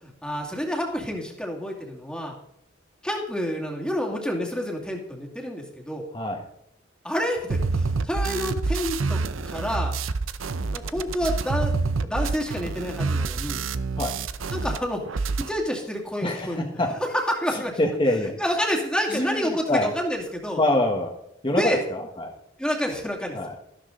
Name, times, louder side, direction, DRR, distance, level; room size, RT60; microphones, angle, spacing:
voice 1, 0.0-2.4 3.0-6.1 7.0-9.2 9.5-9.9 10.7-11.7 12.0-13.6 14.5-16.7 17.1-17.8 18.4-20.6 21.5-21.8 22.6-23.4, equal, 5° left, 0 dB, 2.2 m, -28 dB
sound 1, 7.5-14.8 15.0-15.5, right 4 dB, 85° right, 0.7 m, -27 dB
voice 2, 16.2-16.9 17.5-18.3 19.1-19.9 20.6-21.1 21.4-22.3 23.3-23.5, left 1 dB, 25° left, 1 dB, 1.4 m, -25 dB
13.5 x 12.0 x 3.9 m, 0.75 s
head